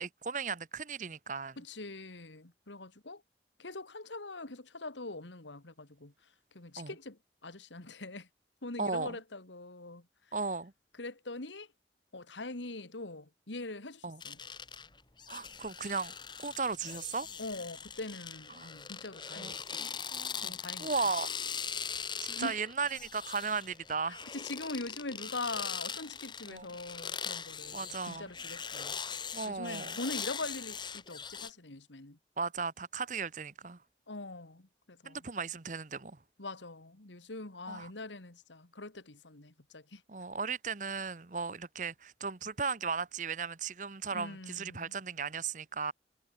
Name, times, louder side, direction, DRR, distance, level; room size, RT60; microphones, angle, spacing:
voice 1, 0.0-1.6 6.8-6.9 8.8-9.2 10.3-10.7 14.0-14.2 15.3-16.1 16.4-17.3 18.5-18.7 19.4-21.3 22.2-24.3 26.4-26.7 27.7-28.3 29.3-30.0 32.4-33.8 35.0-36.2 37.7-37.9 40.1-45.9, right 5 dB, 45° right, 1.0 m, -36 dB
voice 2, 1.6-3.2 3.6-6.1 6.5-8.3 8.6-10.0 11.0-11.7 12.1-14.4 17.4-19.8 20.4-20.9 22.3-22.6 24.3-29.0 29.4-32.2 34.1-35.2 36.4-40.0 44.1-44.9, left 2 dB, 90° left, 2.2 m, -43 dB
sound 1, 14.2-31.5, left 6 dB, 25° left, 2.2 m, -41 dB
head